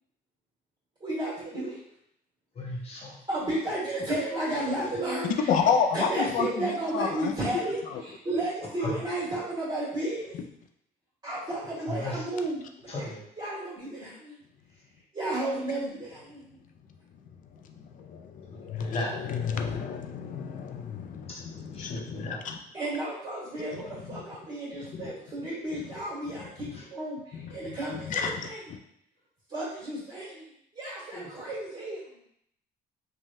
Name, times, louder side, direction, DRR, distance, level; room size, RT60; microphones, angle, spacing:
voice 1, 1.0-1.8 3.3-5.3 5.9-7.8 8.1-10.4 11.2-12.6 12.9-13.1 13.4-14.4 15.1-16.4 22.7-27.2 27.5-28.6 29.5-30.4 30.7-32.0, right 1 dB, 25° right, -9 dB, 1.4 m, -32 dB
voice 2, 2.5-3.2 8.8-9.0 11.9-12.2 12.9-13.2 18.5-19.1 21.3-21.4 21.7-22.4 26.7-26.8 31.1-31.3, left 2 dB, 35° left, -3 dB, 0.9 m, -35 dB
voice 3, 5.5-7.4 7.9-8.0 10.3-10.4 17.4-22.6 23.7-24.2 24.8-25.1 25.8-25.9 26.3-26.8 27.3-28.8, left 6 dB, 50° left, 4 dB, 0.4 m, -31 dB
3.1 x 2.3 x 2.6 m, 0.72 s
cardioid pair, 110°, 17 cm